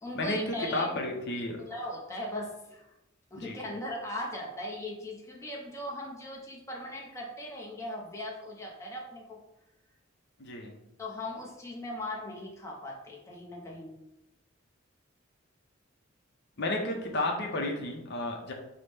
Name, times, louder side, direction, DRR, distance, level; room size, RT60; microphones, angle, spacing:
voice 1, 0.0-1.0 1.5-2.9 3.3-9.4 11.0-14.0, left 1 dB, 15° left, -2 dB, 0.6 m, -39 dB
voice 2, 0.7-1.6 3.4-3.6 10.4-10.8 16.6-18.5, left 2 dB, 55° left, 1 dB, 0.6 m, -32 dB
5.7 x 2.0 x 3.3 m, 0.91 s
head